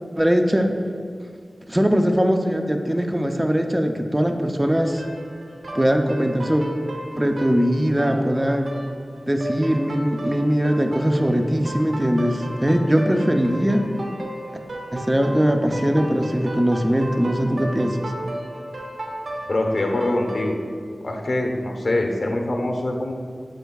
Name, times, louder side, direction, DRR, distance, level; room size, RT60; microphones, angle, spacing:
voice 1, 0.2-0.7 1.7-5.0 5.7-6.6 7.2-8.7 9.3-13.8 14.9-18.0, equal, 15° right, 4 dB, 0.5 m, -21 dB
sound 1, 4.7-20.5, right 1 dB, 85° right, 1.2 m, -34 dB
voice 2, 19.5-20.6 21.0-23.1, left 1 dB, 55° left, 2 dB, 0.9 m, -23 dB
8.0 x 7.8 x 2.3 m, 2.2 s
wide cardioid pair, 80°, 0 cm